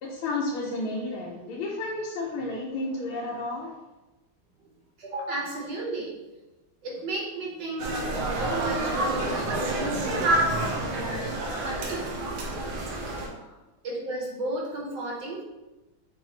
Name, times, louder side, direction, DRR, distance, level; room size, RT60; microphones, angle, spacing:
voice 1, 0.0-3.7 13.3-13.5, left 2 dB, 85° left, -3 dB, 1.4 m, -32 dB
voice 2, 5.0-6.1 6.8-12.2 13.8-15.4, right 2 dB, 65° right, -3 dB, 1.3 m, -34 dB
sound 1, 7.8-13.3, right 2 dB, 80° right, 1.5 m, -28 dB
4.9 x 2.0 x 3.7 m, 1.1 s
omnidirectional pair, 2.2 m